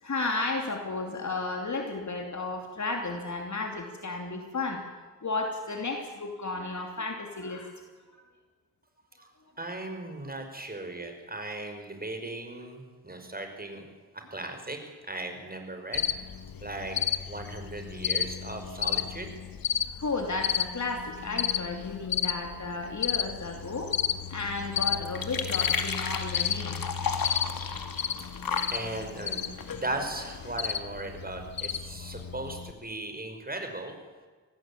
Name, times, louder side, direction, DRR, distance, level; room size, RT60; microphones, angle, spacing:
voice 1, 0.0-4.9 5.2-7.7 8.1-8.2 19.9-24.0 24.3-26.8, left 3 dB, 55° left, 3 dB, 2.9 m, -33 dB
voice 2, 9.6-13.8 14.1-16.0 16.6-17.0 17.3-19.3 28.6-33.9, right 2 dB, 25° right, 5 dB, 5.5 m, -37 dB
Cricket, 15.9-32.7, left 9 dB, 90° left, 1.3 m, -33 dB
sound 1, 23.6-30.7, left 5 dB, 75° left, 2.5 m, -36 dB
25.0 x 18.0 x 8.7 m, 1.4 s
wide cardioid pair, 75°, 34 cm